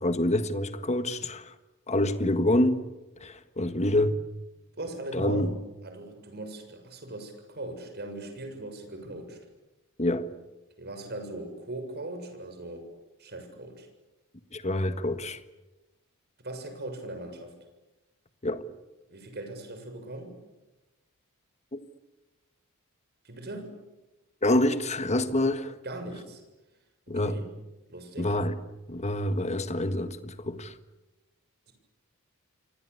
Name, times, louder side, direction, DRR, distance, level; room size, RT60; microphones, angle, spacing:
voice 1, 0.0-1.5 1.9-2.9 3.2-4.2 5.1-5.5 10.0-10.3 14.5-15.4 18.4-18.6 21.7-21.8 24.4-25.7 27.1-27.4 28.2-28.6 28.9-30.7, left 1 dB, 30° left, 1.6 m, -26 dB
voice 2, 4.8-9.4 10.8-12.9 13.2-13.9 16.4-17.5 19.1-20.4 23.2-23.8 25.8-26.4 27.2-27.5 27.9-28.4 31.7-31.8, right 1 dB, 45° right, 6.9 m, -39 dB
29.0 x 24.5 x 8.4 m
head